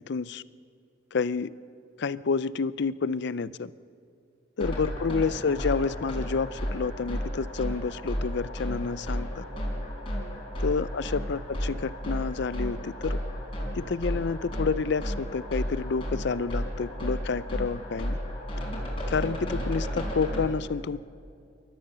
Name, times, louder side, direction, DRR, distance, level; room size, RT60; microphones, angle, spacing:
voice 1, 0.1-0.4 1.1-1.5 2.0-3.7 4.6-9.4 10.6-13.2 13.8-18.2 19.1-21.0, left 5 dB, 60° left, 18 dB, 0.5 m, -29 dB
sound 1, 4.6-20.5, equal, 30° left, 4.4 m, -33 dB
28.5 x 13.5 x 6.9 m, 2.4 s
head